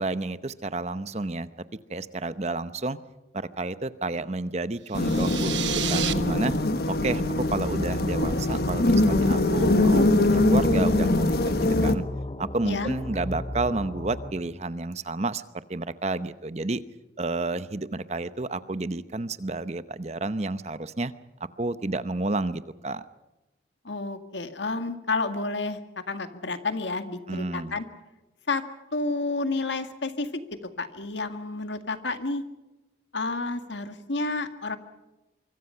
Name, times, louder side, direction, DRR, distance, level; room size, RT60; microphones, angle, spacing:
voice 1, 0.0-1.5 1.9-3.0 3.3-5.6 5.9-6.5 6.9-12.0 12.4-15.4 15.7-16.8 17.2-21.1 21.6-23.0 27.3-27.7, right 2 dB, 35° right, 13 dB, 0.8 m, -30 dB
sound 1, 4.9-11.9, left 2 dB, 55° left, 1.4 m, -23 dB
sound 2, 4.9-6.1, right 12 dB, 80° right, 1.2 m, -31 dB
sound 3, 7.1-14.3, left 1 dB, 30° left, 0.8 m, -36 dB
voice 2, 12.6-13.0 23.8-25.8 26.1-27.9 28.5-28.6 28.9-30.4 30.8-32.4 33.1-34.8, left 3 dB, 80° left, 8 dB, 1.9 m, -30 dB
25.0 x 24.5 x 5.7 m, 1.1 s
head